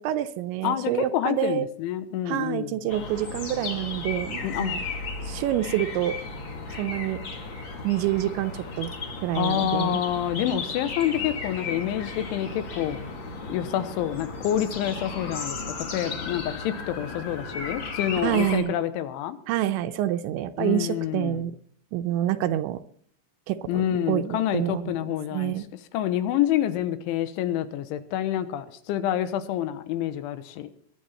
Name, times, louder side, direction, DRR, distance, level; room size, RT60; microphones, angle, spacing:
voice 1, 0.0-1.7 2.3-4.8 5.2-6.2 6.8-7.2 7.8-8.9 9.2-10.0 18.2-18.8 19.5-21.5 21.9-22.8 23.5-24.9 25.3-25.7, right 12 dB, 80° right, 10 dB, 2.8 m, -27 dB
voice 2, 0.6-2.9 4.4-4.8 9.3-13.0 13.5-19.4 20.6-21.5 23.7-25.5 25.9-30.7, left 11 dB, 80° left, 12 dB, 3.4 m, -28 dB
sound 1, 2.9-18.6, left 4 dB, 50° left, 1.4 m, -35 dB
22.5 x 9.0 x 4.3 m, 0.63 s
omnidirectional pair, 5.5 m